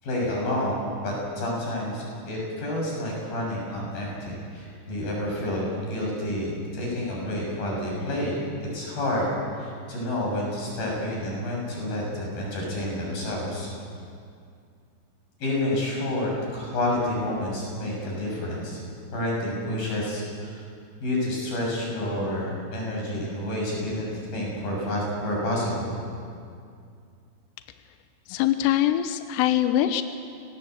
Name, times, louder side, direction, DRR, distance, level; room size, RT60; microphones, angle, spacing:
voice 1, 0.0-13.7 15.4-18.8 19.1-20.6 21.0-25.9, left 1 dB, 45° left, -2 dB, 8.3 m, -29 dB
voice 2, 28.3-30.0, left 12 dB, 80° left, 9 dB, 2.5 m, -23 dB
28.5 x 19.5 x 8.0 m, 2.3 s
omnidirectional pair, 5.9 m